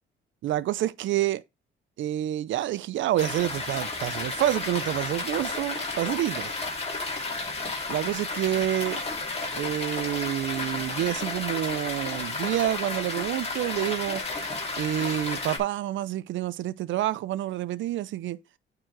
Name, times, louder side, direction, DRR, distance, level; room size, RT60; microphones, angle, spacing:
voice 1, 0.4-1.4 2.0-6.5 7.9-9.0 9.5-14.2 14.8-18.4, right 13 dB, 75° right, 0.6 m, -28 dB
sound 1, 3.2-15.6, left 3 dB, 30° left, 2.6 m, -32 dB
8.9 x 3.9 x 4.5 m
cardioid pair, 90°, 20 cm